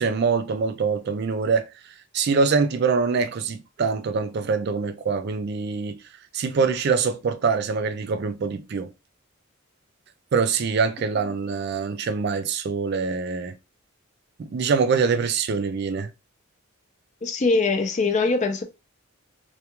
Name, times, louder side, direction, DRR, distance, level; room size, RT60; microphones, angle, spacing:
voice 1, 0.0-6.0 6.3-8.9 10.3-13.6 14.4-16.1, right 5 dB, 50° right, 0.3 m, -24 dB
voice 2, 17.2-18.6, left 3 dB, 35° left, 0.4 m, -22 dB
2.3 x 2.2 x 2.9 m
head